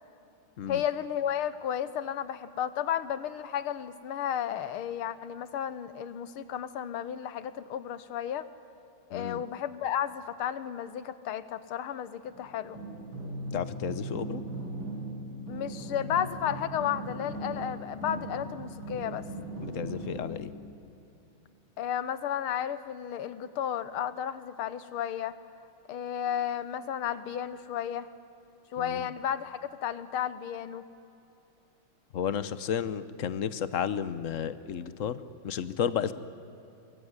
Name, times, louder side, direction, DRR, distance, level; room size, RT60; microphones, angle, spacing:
voice 1, 0.7-8.5 9.1-12.8 15.5-19.2 21.8-25.3 25.9-28.1 28.7-30.8, left 9 dB, 85° left, 14 dB, 1.9 m, -33 dB
voice 2, 9.1-9.4 13.5-14.4 19.6-20.5 28.8-29.1 32.1-36.1, left 8 dB, 55° left, 14 dB, 0.9 m, -32 dB
sound 1, 12.3-20.5, right 2 dB, 65° right, 9.0 m, -39 dB
24.0 x 22.0 x 9.7 m, 2.9 s
omnidirectional pair, 2.3 m